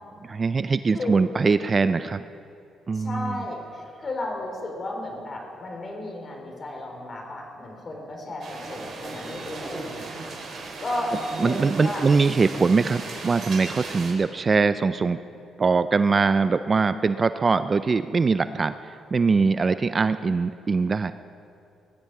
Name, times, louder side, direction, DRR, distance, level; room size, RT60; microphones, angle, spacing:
voice 1, 0.2-2.2 2.9-3.4 11.4-15.2 15.6-21.1, right 4 dB, 35° right, 12 dB, 0.4 m, -22 dB
voice 2, 2.9-10.3 10.8-11.1 11.4-12.1, left 2 dB, 40° left, 1 dB, 4.0 m, -34 dB
sound 1, 8.4-14.1, right 3 dB, 60° right, 4.0 m, -37 dB
20.0 x 14.5 x 4.8 m, 2.6 s
cardioid pair, 90°, 0 cm